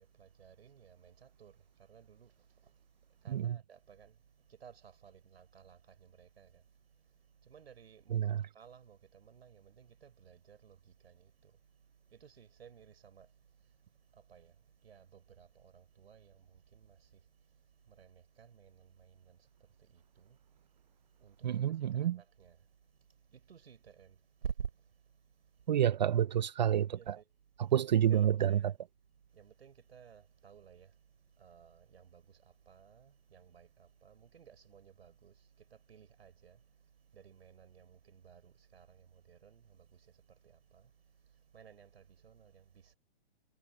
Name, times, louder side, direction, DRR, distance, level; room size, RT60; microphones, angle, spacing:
voice 1, 0.0-25.8 26.9-28.8 29.1-43.0, right 7 dB, 80° right, 5.2 m, -54 dB
voice 2, 21.4-22.2 25.7-27.1 27.7-28.5, right 10 dB, 45° right, 0.5 m, -28 dB
hypercardioid pair, 165°, 31 cm